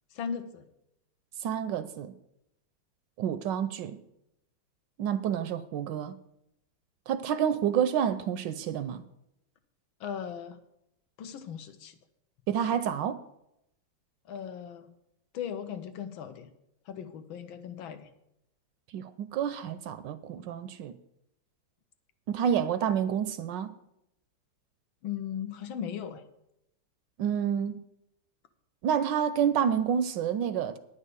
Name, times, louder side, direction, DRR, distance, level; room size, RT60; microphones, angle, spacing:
voice 1, 0.1-0.7 10.0-10.6 11.2-12.0 14.3-14.9 15.3-16.5 16.9-18.1 25.0-26.2, left 8 dB, 80° left, 1.6 m, -37 dB
voice 2, 1.4-2.1 3.2-4.0 5.0-6.1 7.1-9.0 12.5-13.2 18.9-21.0 22.3-23.8 27.2-27.8 28.8-30.8, right 8 dB, 75° right, 1.1 m, -29 dB
9.8 x 5.5 x 8.1 m
omnidirectional pair, 2.2 m